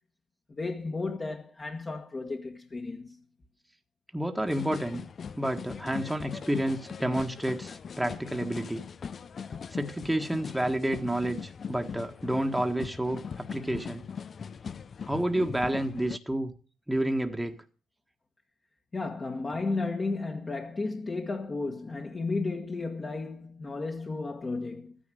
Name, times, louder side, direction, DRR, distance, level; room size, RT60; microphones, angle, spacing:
voice 1, 0.5-3.2 18.9-25.0, left 3 dB, 30° left, 1.7 m, -33 dB
voice 2, 4.1-5.0 5.3-8.8 9.7-14.0 15.1-16.5 16.9-17.6, right 1 dB, 5° right, 1.5 m, -30 dB
sound 1, 4.5-16.2, left 6 dB, 45° left, 0.6 m, -40 dB
13.5 x 10.0 x 7.7 m
cardioid pair, 90°, 0 cm